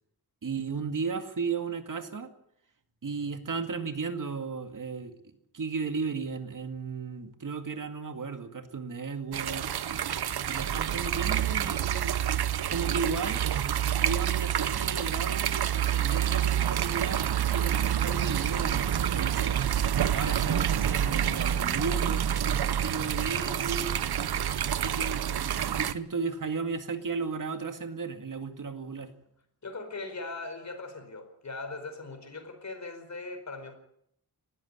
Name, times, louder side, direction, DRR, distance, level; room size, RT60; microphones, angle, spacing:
voice 1, 0.4-2.3 3.0-5.1 5.5-9.7 10.5-12.2 12.7-13.4 13.9-19.6 20.1-23.9 24.6-29.1, right 5 dB, 55° right, 7 dB, 2.0 m, -35 dB
sound 1, 9.3-25.9, right 10 dB, 80° right, 0.9 m, -28 dB
voice 2, 29.6-33.7, left 3 dB, 45° left, 7 dB, 5.0 m, -40 dB
19.5 x 14.5 x 9.7 m, 0.72 s
wide cardioid pair, 140°, 38 cm